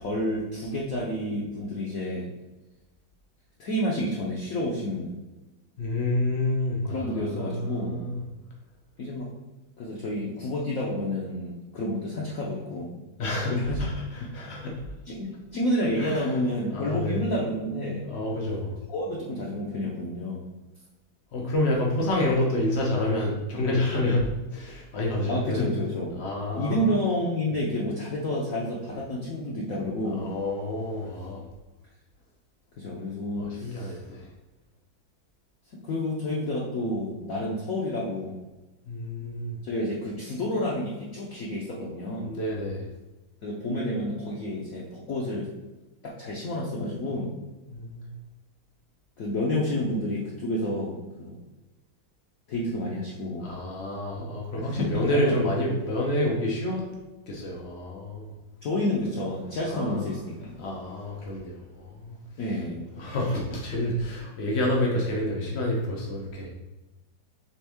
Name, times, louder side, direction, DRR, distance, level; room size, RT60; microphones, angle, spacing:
voice 1, 0.0-2.3 3.6-5.2 6.8-8.0 9.0-9.3 9.8-13.0 13.5-13.8 14.2-14.7 15.1-18.0 18.9-20.4 25.3-26.2 26.5-30.3 32.8-34.0 35.7-38.3 39.6-42.3 43.4-45.5 46.0-47.3 49.2-51.4 52.5-53.5 54.6-55.3 58.6-60.5 62.4-62.9, left 1 dB, 65° left, -4 dB, 0.9 m, -30 dB
voice 2, 5.8-8.2 13.2-14.8 16.0-16.3 16.7-17.2 18.1-18.7 21.3-25.7 26.1-26.9 30.1-31.5 33.3-34.3 38.9-39.6 42.2-42.9 47.7-48.1 53.4-56.9 57.3-58.3 59.7-60.0 60.6-62.2 62.9-66.5, left 1 dB, 85° left, -1 dB, 0.5 m, -28 dB
4.4 x 3.5 x 3.4 m, 1.1 s
omnidirectional pair, 2.2 m